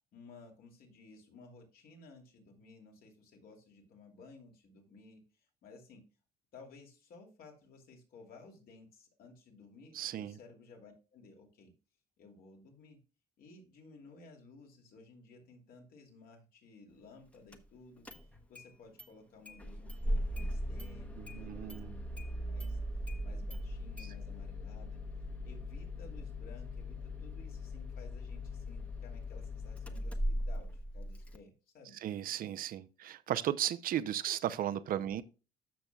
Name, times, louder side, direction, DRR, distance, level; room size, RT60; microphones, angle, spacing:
voice 1, 0.1-6.0 6.5-11.7 12.2-13.0 13.4-18.1 18.5-21.8 22.1-22.8 23.2-25.0 25.4-32.0 35.1-35.2, left 3 dB, 60° left, 2.8 m, -56 dB
voice 2, 9.9-10.4 21.2-21.9 32.0-35.2, right 11 dB, 55° right, 0.6 m, -35 dB
Engine starting, 17.5-17.6 18.0-18.7 19.0-19.1 19.5-31.4, equal, 5° left, 1.0 m, -39 dB
13.5 x 6.0 x 2.3 m
cardioid pair, 110°, 17 cm